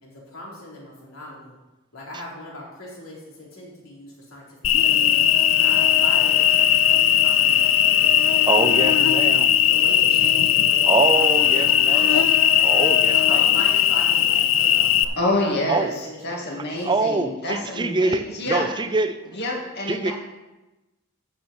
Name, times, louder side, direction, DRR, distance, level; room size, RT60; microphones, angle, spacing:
voice 1, 0.0-1.5 1.9-5.2 5.6-9.1 9.7-12.4 13.1-16.6 16.9-17.1, left 1 dB, 85° left, -4 dB, 3.7 m, -39 dB
Cricket, 4.6-15.0, left 10 dB, 70° left, 0.6 m, -18 dB
voice 2, 8.5-9.5 10.8-12.3 12.6-13.4 15.7-15.9 16.8-19.2 19.9-20.1, right 3 dB, 20° right, 10 dB, 0.5 m, -24 dB
voice 3, 15.2-18.7 19.3-20.1, left 2 dB, 55° left, -2 dB, 2.2 m, -27 dB
13.0 x 7.1 x 4.4 m, 1.1 s
head